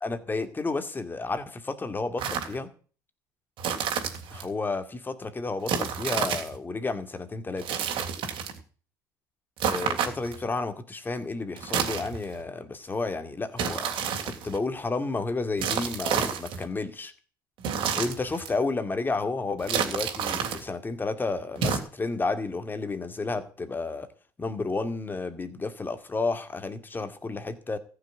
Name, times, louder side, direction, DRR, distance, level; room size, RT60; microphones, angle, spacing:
voice 1, 0.0-2.7 4.3-7.7 9.6-14.0 14.2-17.1 17.9-24.1 24.4-27.8, left 3 dB, 20° left, 9 dB, 2.2 m, -31 dB
sound 1, 2.2-2.6 3.6-4.5 5.7-6.6 7.6-8.6 9.6-10.4 11.6-12.4 13.6-14.6 15.6-16.7 17.6-18.5 19.6-20.6 21.6-21.8, right 7 dB, 55° right, 3.3 m, -29 dB
14.5 x 6.5 x 9.3 m, 0.40 s
supercardioid pair, 85°, 10 cm